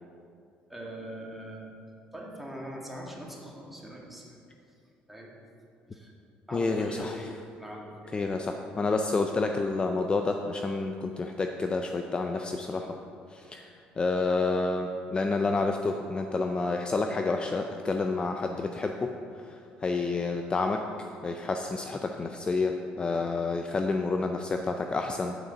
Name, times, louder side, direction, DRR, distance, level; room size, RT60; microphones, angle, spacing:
voice 1, 0.7-1.7 2.1-4.4 5.1-5.3 5.9-6.1 6.5-8.1, equal, 5° right, -3 dB, 1.9 m, -41 dB
voice 2, 6.5-7.3 8.1-13.0 13.3-19.1 19.4-25.4, left 3 dB, 25° left, 4 dB, 0.5 m, -29 dB
8.0 x 4.9 x 6.7 m, 2.5 s
supercardioid pair, 85°, 3 cm